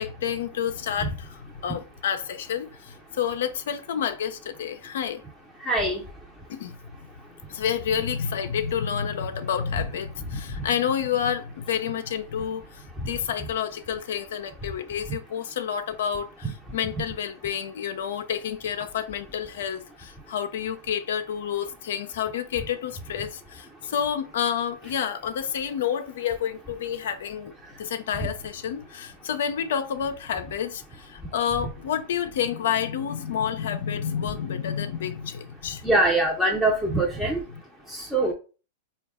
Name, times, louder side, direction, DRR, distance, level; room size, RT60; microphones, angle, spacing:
voice 1, 0.0-5.2 6.5-6.8 7.5-27.5 27.8-35.8, left 8 dB, 70° left, 0.4 m, -29 dB
voice 2, 5.7-6.0 35.8-37.4 38.1-38.3, right 2 dB, ahead, 0.7 m, -22 dB
4.0 x 2.3 x 3.5 m
hypercardioid pair, 105°, 0 cm